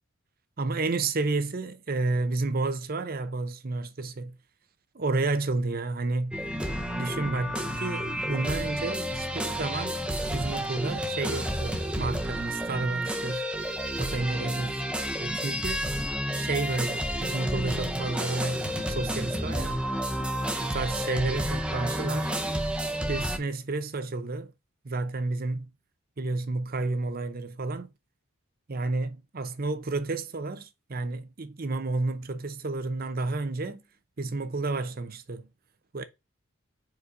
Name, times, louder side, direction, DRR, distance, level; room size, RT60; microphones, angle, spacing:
voice 1, 0.6-4.4 4.9-6.4 7.0-13.5 14.0-14.8 15.2-15.9 16.3-19.9 20.6-22.3 23.1-24.5 24.8-25.7 26.2-27.9 28.7-33.8 34.2-35.5 35.9-36.0, right 3 dB, 40° right, 0.7 m, -31 dB
The Edge, 6.3-23.4, equal, 5° right, 0.8 m, -31 dB
4.8 x 4.1 x 4.9 m
head